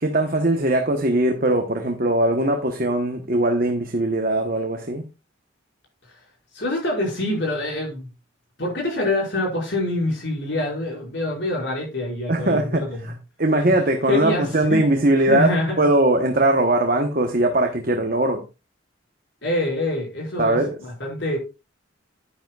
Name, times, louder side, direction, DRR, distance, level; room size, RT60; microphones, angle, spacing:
voice 1, 0.0-5.0 12.3-13.1 13.4-18.4 20.4-20.7, right 1 dB, 45° right, 4 dB, 1.1 m, -20 dB
voice 2, 6.5-8.1 8.6-13.0 14.0-14.8 15.2-15.9 19.4-21.4, left 1 dB, 60° left, -1 dB, 5.4 m, -25 dB
10.5 x 10.0 x 2.4 m, 0.28 s
head